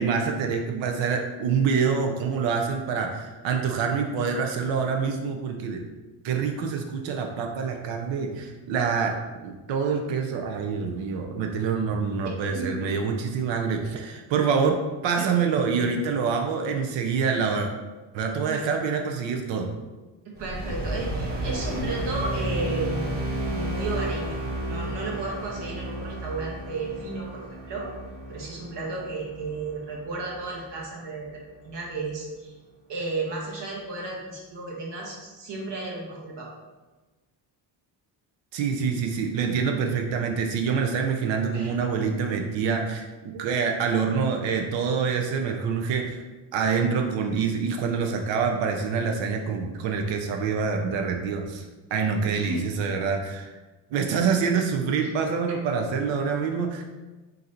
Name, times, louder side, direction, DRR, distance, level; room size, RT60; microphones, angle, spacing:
voice 1, 0.0-5.8 6.2-9.1 9.4-17.7 18.1-19.8 38.5-46.2 46.5-51.7 51.9-53.5 53.9-56.8, right 5 dB, 90° right, 3 dB, 0.6 m, -26 dB
voice 2, 20.2-23.0 23.5-24.3 24.7-27.9 28.3-32.5 32.9-36.5 41.5-41.7 52.3-52.6, right 3 dB, 70° right, -2 dB, 1.3 m, -33 dB
sound 1, 20.4-30.8, right 1 dB, 20° right, 1.0 m, -32 dB
3.9 x 2.6 x 4.3 m, 1.2 s
cardioid pair, 155°, 43 cm